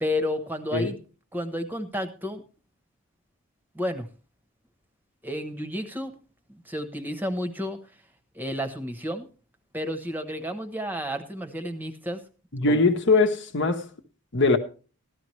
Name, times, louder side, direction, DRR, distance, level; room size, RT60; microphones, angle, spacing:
voice 1, 0.0-1.0 1.3-2.4 3.7-4.1 5.2-6.1 6.5-7.8 8.3-9.3 9.7-12.2 12.7-12.8, left 1 dB, 10° right, 1.0 m, -31 dB
voice 2, 12.5-13.9 14.3-14.6, left 3 dB, 55° left, 1.2 m, -21 dB
14.0 x 12.0 x 3.2 m
head